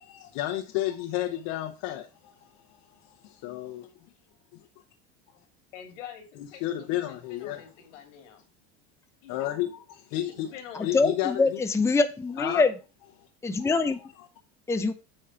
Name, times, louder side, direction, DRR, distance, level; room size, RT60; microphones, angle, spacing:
voice 1, 0.0-2.5 3.2-3.9 6.4-7.6 9.3-9.7 10.1-10.5 10.8-11.5 12.4-12.6 13.6-13.8, left 13 dB, 65° left, 1.1 m, -31 dB
voice 2, 5.7-7.0 7.3-8.4 9.2-9.6 10.1-11.0, left 8 dB, 90° left, 2.4 m, -46 dB
voice 3, 10.9-12.7 13.4-14.0 14.7-14.9, left 3 dB, 10° left, 0.6 m, -24 dB
8.9 x 3.2 x 5.6 m
supercardioid pair, 105°, 36 cm